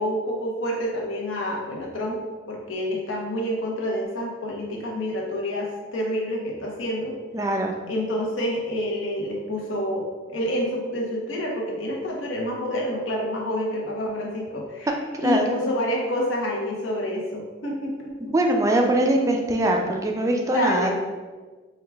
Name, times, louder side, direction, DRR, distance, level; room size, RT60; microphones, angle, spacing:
voice 1, 0.0-2.2 2.5-7.1 7.9-14.9 15.2-18.3 20.4-20.9, left 1 dB, 80° left, -2 dB, 0.9 m, -28 dB
voice 2, 7.3-7.7 15.1-15.6 18.3-20.9, right 1 dB, 15° right, 2 dB, 0.3 m, -22 dB
4.7 x 2.3 x 3.4 m, 1.4 s
head